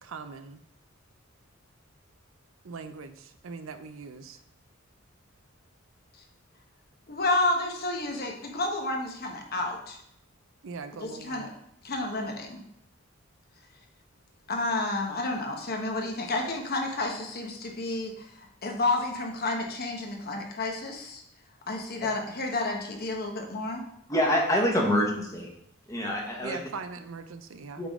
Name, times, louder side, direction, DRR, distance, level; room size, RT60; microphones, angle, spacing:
voice 1, 0.0-0.6 2.6-4.4 10.6-11.5 26.4-27.8, right 4 dB, 75° right, 9 dB, 0.5 m, -41 dB
voice 2, 7.1-10.0 11.0-11.5 11.8-12.6 14.5-21.2 21.7-23.8, left 2 dB, 50° left, 1 dB, 1.1 m, -30 dB
voice 3, 24.1-25.5 25.9-26.6 27.8-27.9, left 1 dB, 15° left, 0 dB, 1.1 m, -26 dB
8.3 x 3.7 x 3.6 m, 0.75 s
head